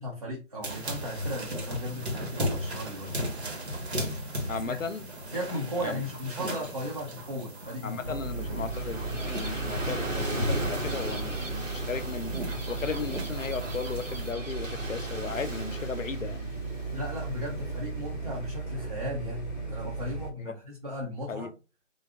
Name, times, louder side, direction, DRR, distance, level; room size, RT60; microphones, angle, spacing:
voice 1, 0.0-3.2 4.6-4.8 5.3-8.6 16.9-21.5, left 1 dB, 30° right, 0.7 m, -36 dB
sound 1, 0.6-14.3, equal, 60° right, 1.2 m, -37 dB
voice 2, 4.5-5.1 5.8-6.0 7.8-16.5 20.4-20.5 21.3-21.5, left 5 dB, 90° left, 0.7 m, -36 dB
Gull seagull / Waves surf, 7.9-18.5, equal, 90° right, 1.6 m, -36 dB
sound 2, 8.0-20.3, right 3 dB, 15° left, 1.0 m, -36 dB
3.8 x 2.3 x 3.5 m
figure-of-eight pair, 170°, 38 cm